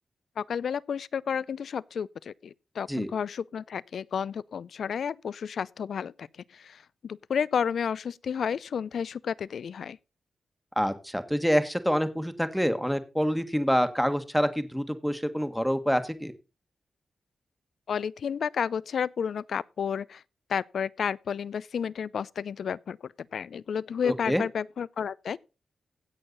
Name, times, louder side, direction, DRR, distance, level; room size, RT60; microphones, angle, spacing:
voice 1, 0.4-6.3 6.5-10.0 17.9-20.2 20.5-25.4, left 7 dB, 75° left, 0.5 m, -31 dB
voice 2, 10.8-16.3 24.0-24.4, equal, ahead, 1.3 m, -26 dB
16.5 x 6.5 x 3.9 m
wide cardioid pair, 100°, 0 cm